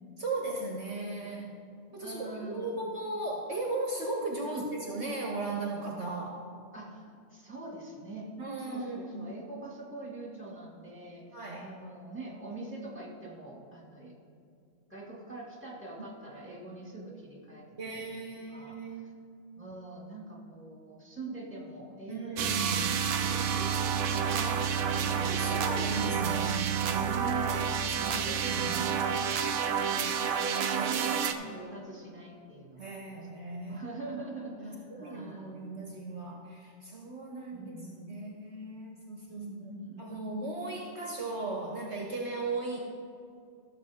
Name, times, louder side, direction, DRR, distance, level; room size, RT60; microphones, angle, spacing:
voice 1, 0.2-1.5 1.9-6.4 8.4-9.3 11.3-11.7 17.8-19.2 22.1-22.9 24.2-24.6 24.9-27.1 27.5-27.7 28.0-28.8 30.7-31.6 32.8-33.8 34.6-37.7 38.1-39.4 40.0-42.8, right 2 dB, 55° right, -1 dB, 1.2 m, -37 dB
voice 2, 2.0-2.8 4.4-4.7 6.7-8.3 8.6-14.1 14.9-17.6 17.9-19.1 19.6-22.9 23.2-24.9 25.2-25.6 26.9-29.5 29.7-30.3 30.9-33.1 33.6-35.7 37.5-38.2 39.4-40.2, right 2 dB, 10° right, -3 dB, 2.0 m, -44 dB
sound 1, 22.4-31.3, right 7 dB, 85° right, 1.1 m, -29 dB
15.0 x 6.9 x 3.6 m, 2.4 s
omnidirectional pair, 1.4 m